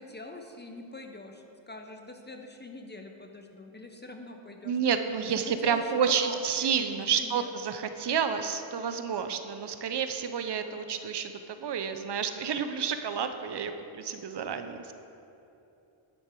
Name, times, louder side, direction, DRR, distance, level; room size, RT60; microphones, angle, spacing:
voice 1, 0.0-4.8 5.2-6.7 7.0-7.5, left 2 dB, 20° left, 4 dB, 0.5 m, -44 dB
voice 2, 4.6-14.9, right 7 dB, 55° right, 8 dB, 0.6 m, -30 dB
10.0 x 8.0 x 4.5 m, 2.8 s
wide cardioid pair, 145°, 49 cm